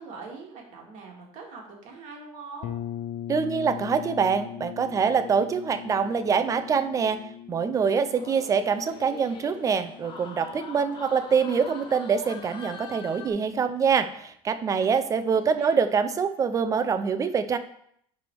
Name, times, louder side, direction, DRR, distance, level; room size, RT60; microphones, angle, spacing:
voice 1, 0.0-2.7 15.3-15.8, right 4 dB, 55° right, 0 dB, 2.0 m, -43 dB
sound 1, 2.6-12.3, left 10 dB, 60° left, 0.7 m, -41 dB
voice 2, 3.3-17.6, right 6 dB, 20° right, 10 dB, 0.5 m, -25 dB
sound 2, 8.1-13.3, left 5 dB, 30° left, 0.9 m, -43 dB
10.5 x 3.4 x 4.6 m, 0.68 s
cardioid pair, 150°, 15 cm